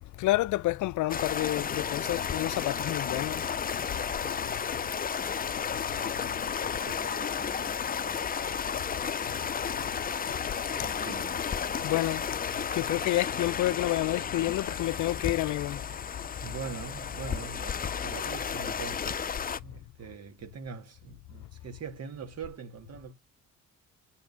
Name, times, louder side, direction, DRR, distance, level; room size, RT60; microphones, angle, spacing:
voice 1, 0.2-3.4 10.8-10.9 11.8-12.2 12.7-15.8, left 16 dB, 75° left, 0.5 m, -29 dB
sound 1, 1.1-19.6, left 7 dB, 30° left, 0.6 m, -33 dB
voice 2, 4.7-5.4 6.6-8.3 10.7-11.5 16.4-19.3 19.6-23.1, right 6 dB, 55° right, 2.3 m, -43 dB
9.3 x 7.0 x 5.5 m
cardioid pair, 90°, 30 cm